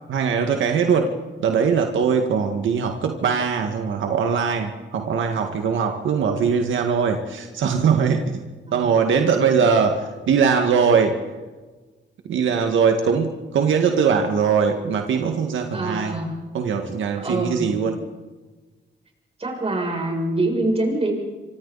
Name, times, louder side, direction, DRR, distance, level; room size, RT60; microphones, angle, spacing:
voice 1, 0.1-1.1 1.4-8.4 8.7-11.2 12.3-16.1 16.5-18.0, right 6 dB, 85° right, 4 dB, 1.9 m, -21 dB
voice 2, 15.7-16.3 17.2-17.7 19.4-21.1, right 2 dB, 30° right, 0 dB, 7.4 m, -24 dB
27.5 x 25.5 x 4.2 m, 1.3 s
cardioid pair, 120°, 19 cm